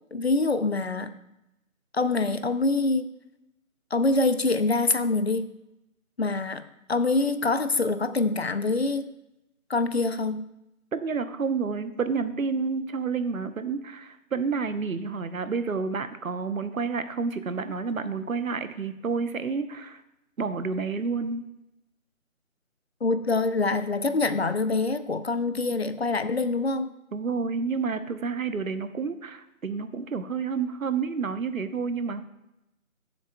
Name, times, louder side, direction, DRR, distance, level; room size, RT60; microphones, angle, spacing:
voice 1, 0.1-1.1 1.9-3.1 3.9-5.5 6.2-6.6 6.9-9.1 9.7-10.4 23.0-26.9, left 3 dB, 50° left, 12 dB, 0.6 m, -25 dB
voice 2, 10.9-20.0 20.4-21.4 27.1-32.2, right 5 dB, 75° right, 11 dB, 0.9 m, -29 dB
15.5 x 7.3 x 2.2 m, 0.88 s
figure-of-eight pair, 165°, 41 cm